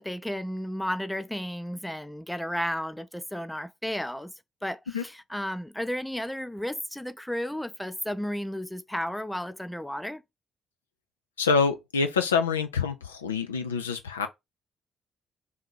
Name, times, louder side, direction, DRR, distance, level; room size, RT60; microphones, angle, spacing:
voice 1, 0.0-4.3 4.6-10.2, equal, 5° left, 0.4 m, -33 dB
voice 2, 11.4-14.3, left 5 dB, 85° left, 0.4 m, -26 dB
3.7 x 2.7 x 4.5 m
figure-of-eight pair, 45°, 0 cm